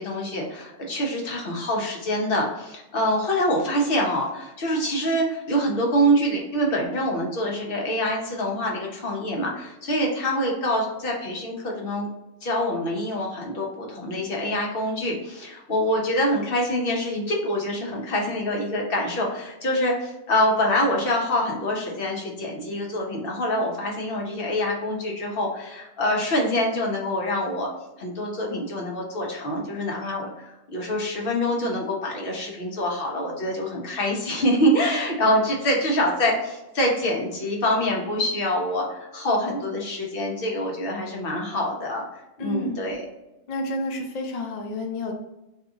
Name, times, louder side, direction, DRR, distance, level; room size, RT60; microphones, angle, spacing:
voice 1, 0.0-12.1 12.4-27.7 28.0-43.0, equal, 50° left, -1 dB, 0.9 m, -25 dB
voice 2, 42.4-42.8 43.5-45.1, left 1 dB, 80° left, 3 dB, 0.3 m, -30 dB
2.7 x 2.4 x 3.7 m, 0.95 s
omnidirectional pair, 1.4 m